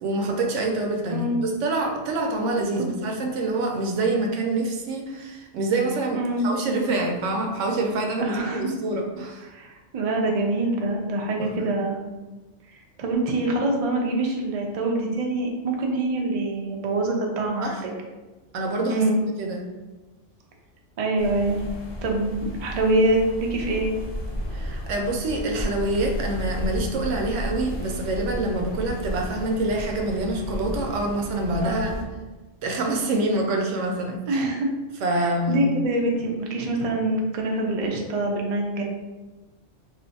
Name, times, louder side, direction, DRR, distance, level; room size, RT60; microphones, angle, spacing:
voice 1, 0.0-9.5 11.4-11.7 17.6-17.8 18.5-19.0 19.4-19.6 24.5-31.9 32.6-34.4 35.0-35.7, right 2 dB, 80° right, 2 dB, 0.9 m, -26 dB
voice 2, 1.1-1.4 2.8-2.9 6.1-6.5 8.2-8.6 9.5-12.0 13.0-17.9 18.9-19.2 21.0-21.6 22.0-23.9 31.6-32.0 34.3-34.7 35.1-38.8, right 2 dB, 60° right, 1 dB, 0.3 m, -25 dB
sound 1, 21.2-32.0, equal, 45° left, 0.3 m, -33 dB
2.5 x 2.4 x 3.9 m, 1.2 s
omnidirectional pair, 1.3 m